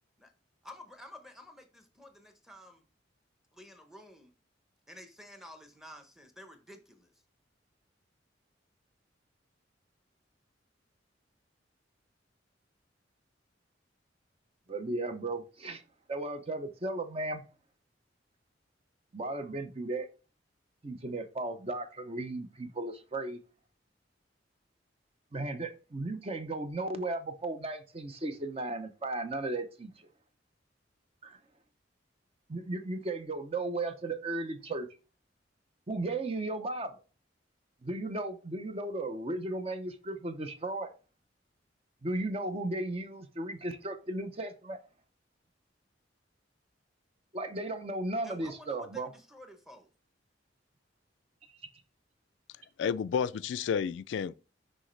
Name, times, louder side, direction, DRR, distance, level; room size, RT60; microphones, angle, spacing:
voice 1, 0.6-2.8 3.5-4.3 4.9-7.1 48.2-49.9, left 1 dB, ahead, 0.8 m, -51 dB
voice 2, 14.7-15.8 16.1-17.4 19.1-20.1 20.8-23.4 25.3-30.1 31.2-31.4 32.5-34.9 35.9-37.0 37.8-40.9 42.0-44.8 47.3-49.1, right 2 dB, 30° right, 0.6 m, -35 dB
voice 3, 52.8-54.3, left 7 dB, 75° left, 0.3 m, -31 dB
6.3 x 5.0 x 3.2 m
head